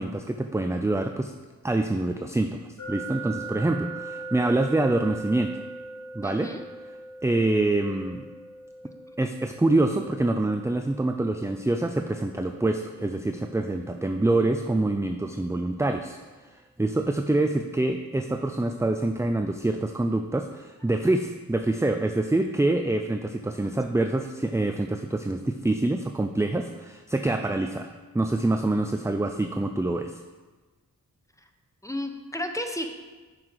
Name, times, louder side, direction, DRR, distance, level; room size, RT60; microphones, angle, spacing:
voice 1, 0.0-1.3 1.6-2.6 2.9-5.5 6.1-6.5 7.2-8.3 9.2-16.2 16.8-30.1, right 2 dB, 10° right, 6 dB, 0.4 m, -26 dB
sound 1, 2.8-15.7, right 2 dB, 50° left, 1.4 m, -42 dB
voice 2, 6.2-6.6 31.8-32.9, left 1 dB, 10° left, 5 dB, 1.1 m, -32 dB
9.7 x 5.8 x 4.7 m, 1.3 s
cardioid pair, 50°, 37 cm